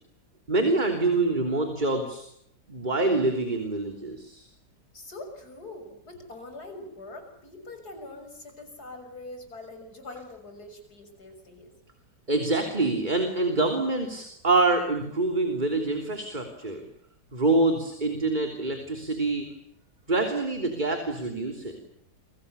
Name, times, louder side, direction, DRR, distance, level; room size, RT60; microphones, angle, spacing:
voice 1, 0.5-2.2 2.7-4.5 12.3-16.9 17.3-19.5 20.1-21.8, right 2 dB, 25° right, 5 dB, 3.4 m, -26 dB
voice 2, 4.9-11.7, left 2 dB, 65° left, 6 dB, 7.1 m, -43 dB
29.0 x 25.0 x 7.0 m, 0.71 s
omnidirectional pair, 1.8 m